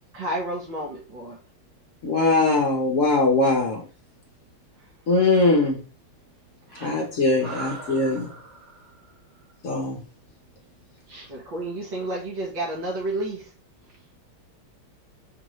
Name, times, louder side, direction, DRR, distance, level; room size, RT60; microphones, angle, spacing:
voice 1, 0.1-1.4 11.3-13.4, right 1 dB, 65° right, -3 dB, 1.7 m, -30 dB
voice 2, 2.0-3.8 5.1-5.8 6.8-8.3 9.6-10.0, left 2 dB, 55° left, 0 dB, 0.9 m, -21 dB
voice 3, 6.7-7.1 7.4-9.0 11.1-11.3, right 3 dB, 85° right, -4 dB, 2.9 m, -40 dB
6.3 x 2.6 x 3.0 m, 0.38 s
omnidirectional pair, 2.3 m